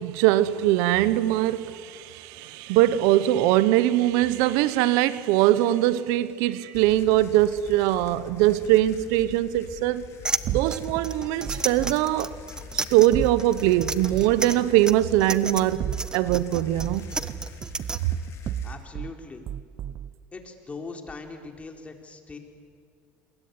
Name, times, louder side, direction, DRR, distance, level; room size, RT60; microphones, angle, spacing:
voice 1, 0.0-10.1 10.5-12.4 12.7-15.8 16.1-17.0, right 14 dB, 75° right, 1.1 m, -22 dB
sound 1, 6.7-18.7, left 6 dB, 55° left, 4.4 m, -45 dB
sound 2, 10.2-18.0, right 3 dB, 15° right, 1.3 m, -32 dB
sound 3, 10.5-12.0 13.1-14.4 15.6-16.5 16.8-19.1 19.5-20.1, right 11 dB, 45° right, 0.7 m, -34 dB
voice 2, 18.6-19.4 20.3-22.4, left 3 dB, 20° left, 4.2 m, -40 dB
27.5 x 22.0 x 9.6 m
supercardioid pair, 105°, 6 cm